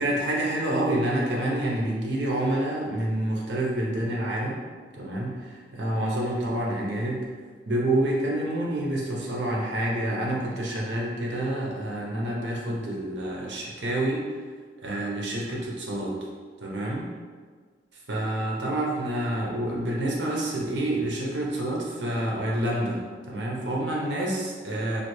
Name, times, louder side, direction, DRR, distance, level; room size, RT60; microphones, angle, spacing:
voice 1, 0.0-4.6 4.9-7.3 7.7-14.3 14.8-16.1 16.6-17.1 18.1-23.0 23.3-25.0, right 1 dB, 70° right, -3 dB, 0.7 m, -28 dB
3.2 x 2.5 x 3.1 m, 1.6 s
head